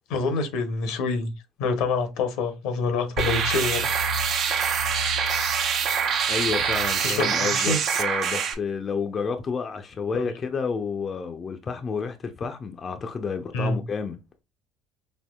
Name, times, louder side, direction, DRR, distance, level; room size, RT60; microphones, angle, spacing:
voice 1, 0.1-1.3 1.6-3.8 7.0-7.8 10.1-10.3 13.5-13.8, left 4 dB, 75° left, 0.8 m, -26 dB
sound 1, 3.2-8.5, right 6 dB, 55° right, 0.7 m, -25 dB
voice 2, 6.3-14.2, left 5 dB, 35° left, 0.5 m, -30 dB
4.3 x 2.7 x 2.3 m
supercardioid pair, 100°, 0 cm